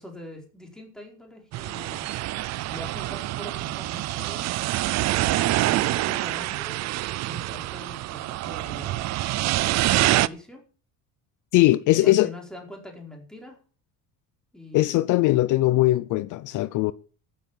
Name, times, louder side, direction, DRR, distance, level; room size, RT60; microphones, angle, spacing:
voice 1, 0.0-2.1 2.7-4.5 5.1-6.9 7.3-9.2 10.0-10.6 11.9-13.6 14.5-15.0, left 1 dB, ahead, 4.7 m, -43 dB
sound 1, 1.5-10.3, right 16 dB, 50° right, 0.6 m, -26 dB
voice 2, 11.5-12.3 14.7-16.9, left 17 dB, 60° left, 0.7 m, -20 dB
14.0 x 9.6 x 7.2 m
cardioid pair, 145°, 36 cm